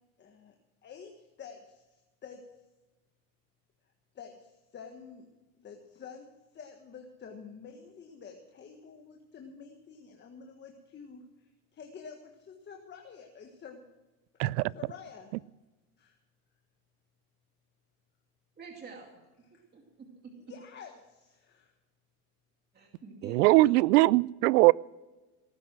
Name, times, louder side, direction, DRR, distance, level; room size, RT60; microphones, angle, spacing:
voice 1, 0.2-0.5 0.8-1.9 2.2-2.4 4.1-5.3 5.6-6.3 6.5-13.9 14.7-15.3 16.0-16.2 19.5-19.6 20.5-21.7, left 6 dB, 25° left, 3 dB, 1.5 m, -49 dB
voice 2, 14.4-14.7 23.3-24.7, right 20 dB, 80° right, 25 dB, 0.5 m, -21 dB
voice 3, 18.6-19.2 19.5-20.6 22.7-23.7, right 5 dB, 20° right, 1 dB, 2.5 m, -47 dB
18.5 x 9.7 x 6.1 m, 1.1 s
supercardioid pair, 135°, 46 cm